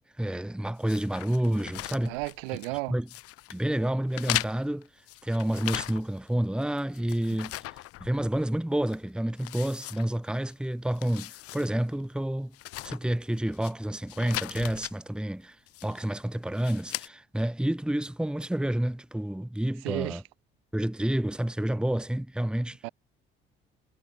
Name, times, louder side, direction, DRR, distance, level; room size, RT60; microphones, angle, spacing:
voice 1, 0.2-2.2 2.9-3.1 3.5-4.9 5.2-12.5 12.8-15.6 15.8-20.2 20.7-22.8, right 1 dB, 5° right, 1.5 m, -29 dB
sound 1, 0.9-2.8 3.1-3.6 4.1-6.3 6.6-8.5 8.9-9.0 9.4-10.5 10.9-11.7 12.0-12.1 12.5-13.7 14.1-14.9 15.7-16.1 16.5-17.1, left 17 dB, 50° left, 0.6 m, -38 dB
voice 2, 2.1-2.9 19.8-20.2 22.8-22.9, right 28 dB, 70° right, 2.6 m, -33 dB
figure-of-eight pair, 50°, 30 cm